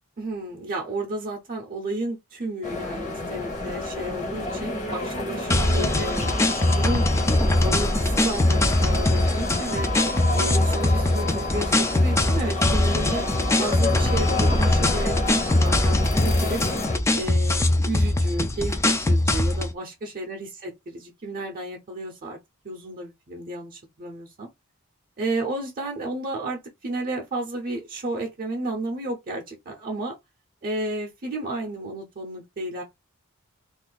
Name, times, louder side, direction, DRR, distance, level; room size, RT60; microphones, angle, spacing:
voice 1, 0.2-7.1 7.6-9.9 10.3-13.3 13.6-16.6 17.1-22.4 22.6-24.5 25.2-30.2 30.6-32.8, right 2 dB, 45° right, 0.6 m, -32 dB
sound 1, 2.6-17.0, left 2 dB, 35° left, 0.9 m, -30 dB
sound 2, 5.5-19.7, left 1 dB, 15° left, 0.3 m, -22 dB
2.6 x 2.4 x 3.8 m
head